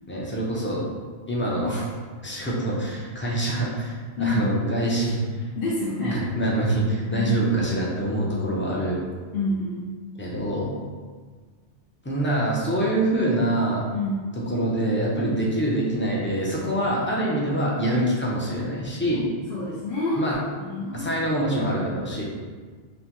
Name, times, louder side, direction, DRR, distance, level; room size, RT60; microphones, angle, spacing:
voice 1, 0.1-0.8 1.3-1.9 2.2-5.2 6.0-9.0 10.2-10.7 12.0-13.8 14.5-19.3 20.2-20.4 20.9-22.2, right 1 dB, 15° left, -5 dB, 0.5 m, -25 dB
voice 2, 5.6-6.3 7.1-7.4 9.3-10.0 13.9-14.3 19.5-20.2 20.6-21.2, left 2 dB, 60° left, -6 dB, 0.7 m, -28 dB
5.3 x 2.1 x 3.0 m, 1.5 s
omnidirectional pair, 1.2 m